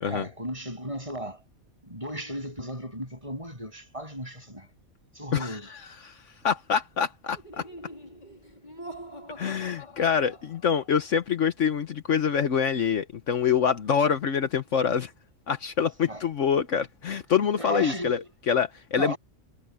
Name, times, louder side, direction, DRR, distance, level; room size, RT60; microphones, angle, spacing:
voice 1, 0.1-1.4 1.8-4.7 5.1-5.7 16.0-16.2 17.6-18.3 18.9-19.2, right 1 dB, 25° right, 8.1 m, -35 dB
voice 2, 5.3-6.2 6.4-7.7 9.4-15.1 15.5-19.1, left 7 dB, 65° left, 1.3 m, -26 dB
Laughter, 7.3-11.0, equal, 35° left, 2.8 m, -44 dB
omnidirectional pair, 1.4 m